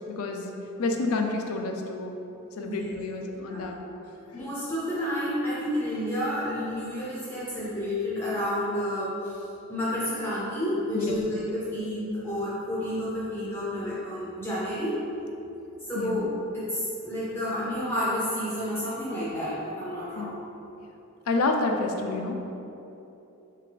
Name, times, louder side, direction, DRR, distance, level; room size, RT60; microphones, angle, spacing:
voice 1, 0.1-0.5 0.8-2.1 2.6-3.8 10.9-11.2 15.9-16.2 20.2-20.3 21.3-22.3, left 3 dB, 85° left, 3 dB, 0.4 m, -29 dB
voice 2, 4.3-9.4 9.7-15.0 15.9-16.3 16.5-20.4, equal, 10° left, -9 dB, 0.6 m, -30 dB
3.7 x 3.7 x 3.3 m, 2.9 s
head